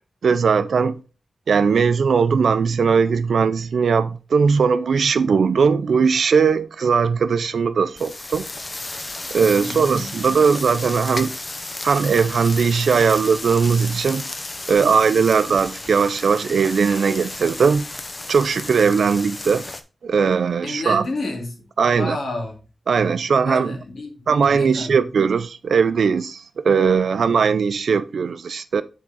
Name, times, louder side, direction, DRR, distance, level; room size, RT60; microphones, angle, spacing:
voice 1, 0.2-1.0 1.5-8.5 9.3-11.3 11.8-14.2 14.7-17.9 18.3-19.6 20.0-21.0 21.8-22.2 22.9-23.8 24.3-28.8, right 5 dB, 85° right, 0.4 m, -19 dB
sound 1, 8.0-19.8, left 2 dB, 30° left, 0.7 m, -33 dB
voice 2, 9.6-10.1 20.6-21.5 21.9-22.6 23.4-25.0, left 2 dB, 70° left, 2.1 m, -30 dB
7.5 x 3.7 x 4.0 m
wide cardioid pair, 120°, 0 cm